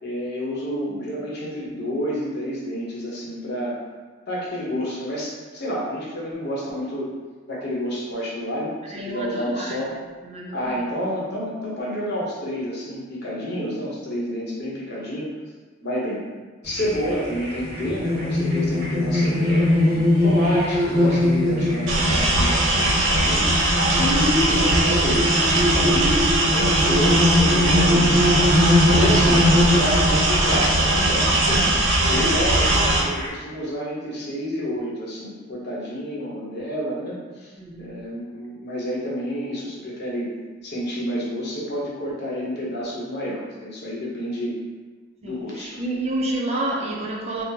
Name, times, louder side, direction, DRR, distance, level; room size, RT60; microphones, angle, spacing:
voice 1, 0.0-3.8 4.3-7.1 7.5-9.9 10.5-15.3 15.8-16.2 16.6-19.7 20.2-26.3 26.5-28.3 28.9-29.5 29.7-40.3 40.6-44.6 45.2-45.8, equal, 60° left, -5 dB, 0.8 m, -29 dB
voice 2, 8.9-10.8 32.4-32.5 37.5-37.9 45.2-47.4, right 1 dB, 35° right, -2 dB, 0.4 m, -30 dB
sound 1, 16.6-33.3, left 1 dB, 50° right, 0.7 m, -22 dB
sound 2, 21.9-33.0, right 1 dB, 80° right, 0.6 m, -20 dB
3.7 x 2.0 x 2.7 m, 1.4 s
head